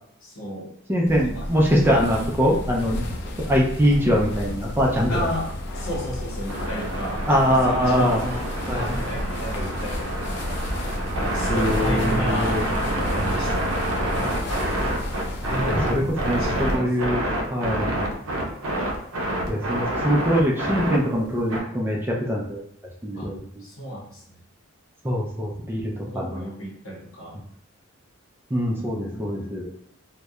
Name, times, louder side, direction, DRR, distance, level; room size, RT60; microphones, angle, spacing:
voice 1, 0.2-0.7 1.2-1.5 5.1-10.3 11.3-14.4 15.5-17.2 17.9-18.2 23.1-23.3 23.6-24.4 26.0-27.4 28.8-29.3, equal, 75° left, -3 dB, 0.8 m, -33 dB
voice 2, 0.9-3.1 3.5-5.1 7.3-8.2 8.7-9.0 11.5-12.6 15.7-17.2 17.5-17.9 19.5-22.6 23.0-23.6 25.0-26.4 28.5-29.7, equal, 10° right, -2 dB, 0.3 m, -23 dB
sound 1, 1.1-16.7, left 1 dB, 55° left, 0.4 m, -32 dB
sound 2, 6.5-21.6, right 1 dB, 85° right, 0.5 m, -27 dB
2.7 x 2.1 x 2.2 m, 0.68 s
head